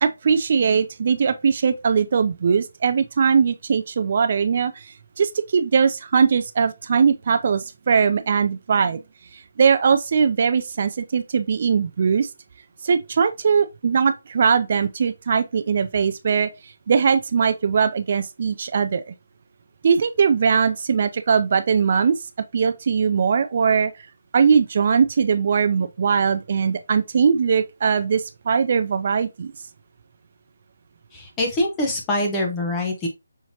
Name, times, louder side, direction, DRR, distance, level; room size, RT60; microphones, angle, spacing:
voice 1, 0.0-9.0 9.3-12.3 12.8-16.5 16.9-19.0 19.8-22.2 22.5-23.9 24.3-29.5, right 6 dB, 40° right, 0.3 m, -20 dB
voice 2, 31.1-33.1, left 1 dB, 10° left, 0.8 m, -24 dB
5.6 x 2.9 x 2.8 m
hypercardioid pair, 170°, 0 cm